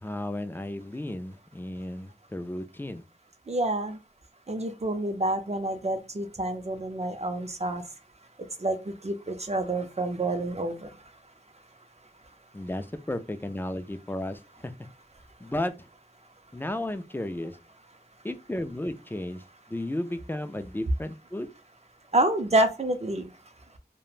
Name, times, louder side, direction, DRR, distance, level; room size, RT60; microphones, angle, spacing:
voice 1, 0.0-3.0 12.5-14.7 15.4-15.9 16.5-17.6 18.2-19.4 19.7-21.5, left 1 dB, 10° left, 0.3 m, -34 dB
voice 2, 3.5-4.0 4.5-7.8 8.6-10.9 22.1-23.3, right 1 dB, 40° right, 0.6 m, -28 dB
3.0 x 2.2 x 2.4 m
wide cardioid pair, 45°, 17 cm